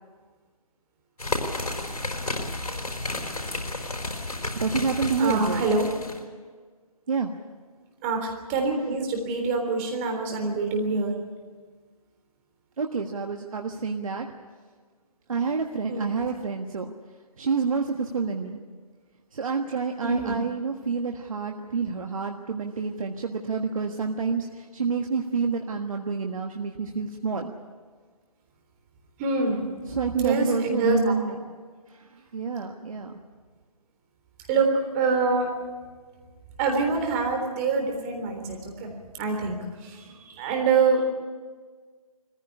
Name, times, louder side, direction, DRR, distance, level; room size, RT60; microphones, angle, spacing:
sound 1, 1.2-6.2, left 2 dB, 85° left, 4.7 m, -32 dB
voice 1, 4.5-5.7 7.1-7.3 12.8-14.3 15.3-16.9 17.4-18.6 19.3-27.5 29.9-31.4 32.0-33.1, right 5 dB, 60° right, 3 dB, 1.5 m, -28 dB
voice 2, 5.2-5.9 8.0-11.1 15.9-16.1 20.0-20.4 29.2-29.6 30.2-31.1 34.5-35.5 36.6-39.6 39.8-41.0, right 4 dB, 25° right, 3 dB, 3.6 m, -25 dB
21.5 x 15.5 x 9.9 m, 1.5 s
figure-of-eight pair, 150°, 19 cm